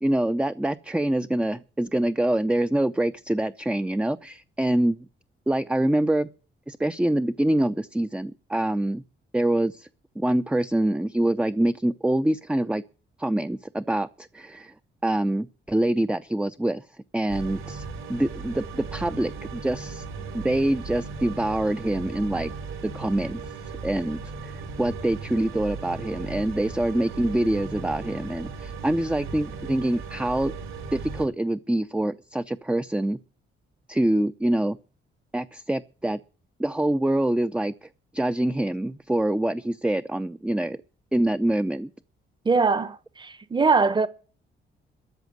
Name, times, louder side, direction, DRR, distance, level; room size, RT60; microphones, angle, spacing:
voice 1, 0.0-5.1 5.5-6.3 6.7-9.0 9.3-9.9 10.2-12.8 13.2-14.7 15.0-16.8 17.1-20.0 20.3-22.5 22.8-23.5 23.8-30.5 30.9-33.2 33.9-34.8 35.3-36.2 36.6-37.9 38.1-40.8 41.1-41.9, right 1 dB, 5° right, 0.6 m, -25 dB
sound 1, 17.3-31.2, right 4 dB, 85° right, 3.9 m, -37 dB
voice 2, 42.4-44.1, right 4 dB, 25° right, 1.1 m, -22 dB
13.5 x 7.2 x 9.3 m
cardioid pair, 105°, 20 cm